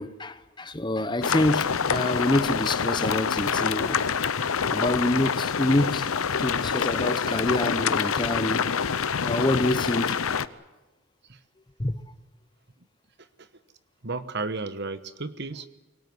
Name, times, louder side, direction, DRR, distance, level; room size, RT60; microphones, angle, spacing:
voice 1, 0.0-4.0 4.7-6.1 6.4-8.7 9.2-10.2 11.8-12.0, left 1 dB, 20° left, 0.9 m, -26 dB
sound 1, 1.2-10.5, left 6 dB, 75° left, 0.7 m, -26 dB
voice 2, 14.0-15.7, right 3 dB, 50° right, 1.2 m, -33 dB
24.0 x 18.0 x 9.7 m
head